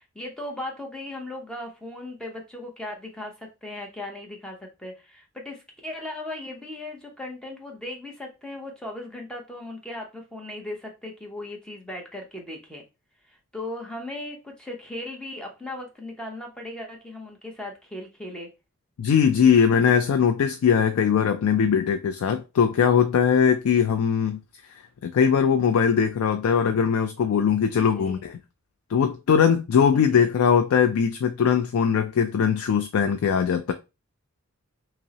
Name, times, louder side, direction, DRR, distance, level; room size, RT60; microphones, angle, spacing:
voice 1, 0.0-12.8 13.3-18.5 28.0-28.2 29.9-30.3, left 1 dB, 5° left, 0.7 m, -37 dB
voice 2, 19.0-24.4 25.0-28.4 28.9-33.7, left 7 dB, 75° left, 0.3 m, -21 dB
5.3 x 2.0 x 2.8 m
head